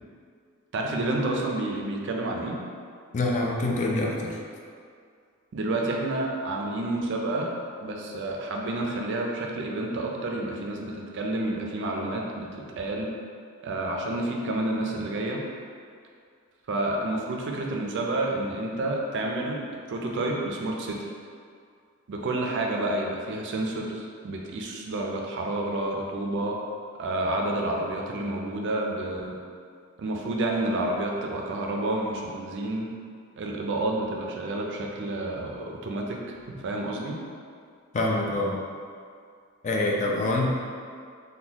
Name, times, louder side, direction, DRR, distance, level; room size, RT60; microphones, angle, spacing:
voice 1, 0.7-2.6 5.5-7.5 7.8-13.1 13.6-15.4 16.7-19.6 19.9-21.0 22.1-26.6 27.0-29.4 30.0-32.9 33.4-36.2 36.6-37.2, right 2 dB, 55° right, 0 dB, 0.4 m, -29 dB
voice 2, 3.1-4.4 37.9-38.6 39.6-40.5, left 2 dB, 35° left, -1 dB, 0.3 m, -25 dB
2.9 x 2.2 x 3.8 m, 2.2 s
head